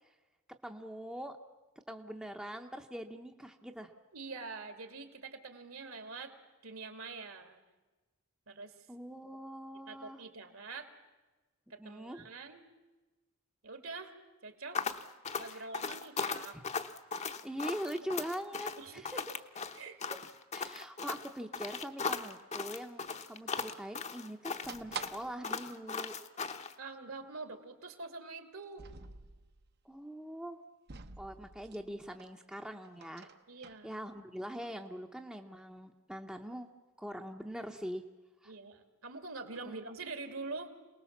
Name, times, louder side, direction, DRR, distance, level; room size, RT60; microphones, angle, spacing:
voice 1, 0.6-1.4 1.9-3.9 8.9-10.2 11.8-12.3 15.5-15.7 16.5-16.6 17.4-19.2 20.5-26.2 29.8-30.6 31.2-33.3 33.8-36.7 37.0-38.0 38.4-38.5 39.7-39.8, equal, 5° right, 4 dB, 0.8 m, -42 dB
voice 2, 4.1-6.3 6.6-7.6 8.5-8.7 9.9-10.9 11.7-12.6 13.6-14.1 14.4-14.8 15.4-16.6 18.1-18.3 18.8-19.0 19.7-20.0 26.8-28.9 33.5-34.1 38.5-40.7, right 3 dB, 70° right, 7 dB, 2.3 m, -45 dB
sound 1, 14.7-26.7, left 5 dB, 30° left, 0.9 m, -38 dB
sound 2, 24.6-25.5 25.9-26.0 26.2-26.3 27.1-27.3 28.6-29.7 30.9-32.3 32.6-33.8, right 5 dB, 45° right, 0.9 m, -47 dB
27.5 x 19.5 x 7.2 m, 1.2 s
head